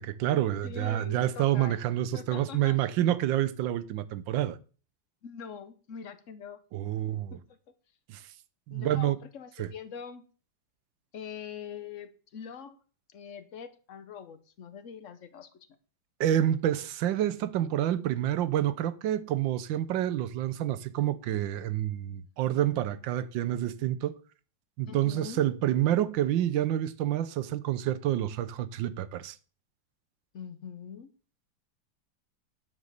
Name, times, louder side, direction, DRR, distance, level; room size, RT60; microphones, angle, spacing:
voice 1, 0.0-4.6 6.7-7.4 8.1-8.2 8.7-9.2 9.6-9.7 16.2-24.2 24.8-29.4, right 12 dB, 75° right, 1.4 m, -28 dB
voice 2, 0.6-1.8 2.1-2.8 5.2-6.6 7.3-7.6 8.7-10.2 11.1-12.8 13.1-15.5 24.9-25.4 30.3-31.1, left 7 dB, 50° left, 1.0 m, -43 dB
9.8 x 5.3 x 6.6 m
omnidirectional pair, 2.1 m